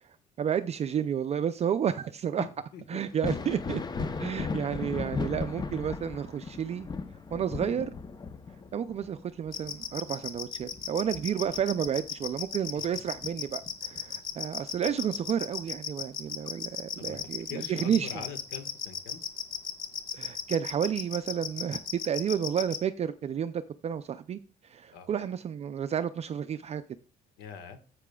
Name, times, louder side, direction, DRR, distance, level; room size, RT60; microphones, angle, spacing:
voice 1, 0.4-2.4 2.9-3.8 4.2-6.9 7.3-7.9 8.7-18.2 20.1-26.8, right 8 dB, 40° right, 11 dB, 0.5 m, -31 dB
Thunder, 3.1-12.4 12.8-14.0 15.6-15.7 16.4-16.6, left 4 dB, 25° left, 0.7 m, -37 dB
sound 1, 9.5-22.8, left 8 dB, 55° left, 1.3 m, -35 dB
voice 2, 17.5-19.2 24.9-25.1 27.4-27.8, left 6 dB, 90° left, 7 dB, 1.5 m, -42 dB
11.0 x 8.3 x 2.3 m, 0.36 s
cardioid pair, 110°, 17 cm